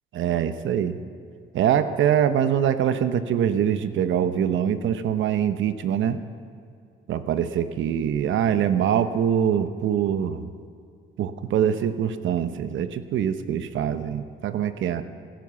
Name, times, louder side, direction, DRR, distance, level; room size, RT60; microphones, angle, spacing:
voice 1, 0.1-1.0 1.5-6.2 7.1-10.5 11.2-15.0, right 9 dB, 75° right, 11 dB, 1.0 m, -24 dB
16.5 x 11.5 x 7.1 m, 2.3 s
cardioid pair, 90°, 20 cm